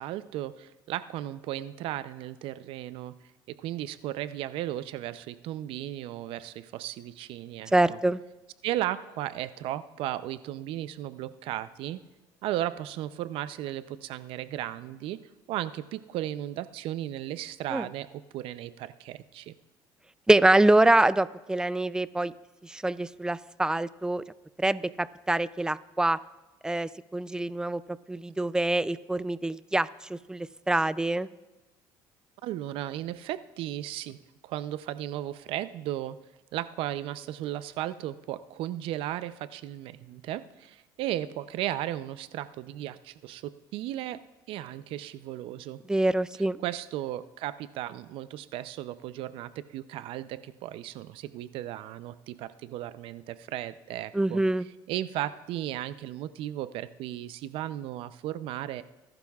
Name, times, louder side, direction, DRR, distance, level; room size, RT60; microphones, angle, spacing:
voice 1, 0.0-3.1 3.5-8.0 8.6-12.0 12.4-15.2 15.5-19.5 32.4-36.2 36.5-44.2 44.5-45.8 46.6-54.4 54.9-58.8, right 13 dB, 70° right, 14 dB, 0.6 m, -35 dB
voice 2, 7.7-8.2 17.7-17.9 20.3-22.3 22.6-24.2 24.6-26.2 26.6-27.8 28.1-31.3 45.9-46.6 54.1-54.7, right 2 dB, 5° right, 17 dB, 0.4 m, -25 dB
22.5 x 12.0 x 2.4 m, 1.0 s
supercardioid pair, 95°, 10 cm